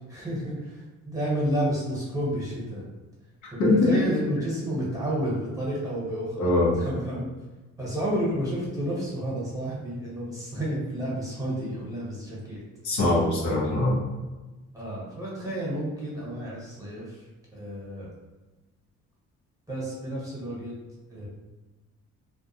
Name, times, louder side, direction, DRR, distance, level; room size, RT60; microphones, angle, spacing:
voice 1, 0.1-2.8 3.5-7.3 7.8-12.6 14.7-17.0 17.5-18.1 19.7-20.7 21.1-21.3, right 1 dB, 10° right, -6 dB, 1.1 m, -31 dB
voice 2, 3.4-4.0 6.4-6.7 12.8-14.0, left 2 dB, 75° left, -4 dB, 0.8 m, -22 dB
2.3 x 2.3 x 2.8 m, 1.2 s
cardioid pair, 90°, 30 cm